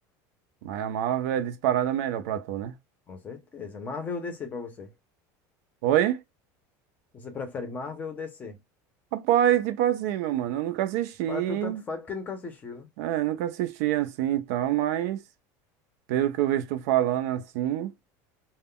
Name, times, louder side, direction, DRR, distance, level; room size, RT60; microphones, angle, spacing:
voice 1, 0.6-2.7 5.8-6.2 9.1-11.8 13.0-15.2 16.1-17.9, right 11 dB, 70° right, 0.4 m, -26 dB
voice 2, 3.1-4.9 7.1-8.6 11.3-12.9, left 4 dB, 20° left, 0.5 m, -36 dB
2.2 x 2.0 x 3.6 m
cardioid pair, 175°, 9 cm